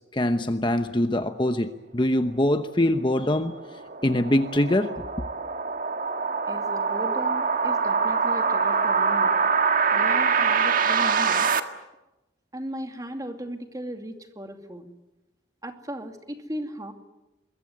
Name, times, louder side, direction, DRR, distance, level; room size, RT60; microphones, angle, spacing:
voice 1, 0.1-3.5 4.0-5.0, left 1 dB, 25° left, 8 dB, 1.0 m, -23 dB
sound 1, 2.9-11.6, right 5 dB, 45° right, 1.7 m, -24 dB
voice 2, 6.5-9.4 9.9-11.5 12.5-14.9 15.6-16.9, equal, 20° right, 5 dB, 2.5 m, -36 dB
24.5 x 22.5 x 9.6 m, 1.0 s
head